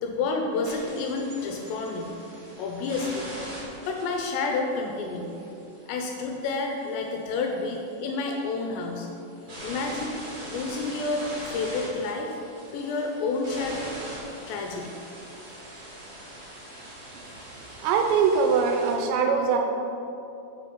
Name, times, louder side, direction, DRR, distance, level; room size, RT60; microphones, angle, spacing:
voice 1, 0.0-2.1 2.6-3.3 3.9-5.4 5.9-9.1 9.6-12.4 12.7-13.9 14.5-15.0, left 3 dB, 80° left, 2 dB, 2.7 m, -30 dB
sound 1, 0.6-18.9, right 1 dB, 65° right, 0.9 m, -43 dB
voice 2, 17.8-19.6, right 5 dB, 85° right, 3 dB, 2.7 m, -22 dB
7.7 x 5.8 x 5.7 m, 2.8 s
omnidirectional pair, 5.4 m